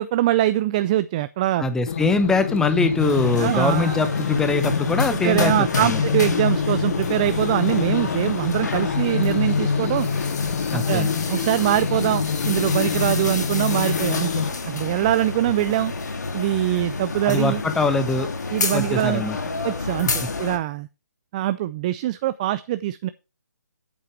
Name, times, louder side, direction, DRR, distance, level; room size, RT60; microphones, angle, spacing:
voice 1, 0.0-1.7 3.4-4.0 5.1-10.1 10.7-15.9 16.3-17.6 18.5-19.3 19.6-20.1 20.4-20.9 21.3-23.1, right 14 dB, 25° right, 14 dB, 0.4 m, -23 dB
voice 2, 1.6-6.0 10.7-11.1 17.2-18.3 18.7-19.4, left 3 dB, 5° left, 10 dB, 0.8 m, -22 dB
sound 1, 1.9-14.5, left 6 dB, 45° left, 1.0 m, -26 dB
sound 2, 3.0-20.6, left 3 dB, 75° left, 2.4 m, -29 dB
8.8 x 8.1 x 4.6 m, 0.29 s
hypercardioid pair, 155°, 9 cm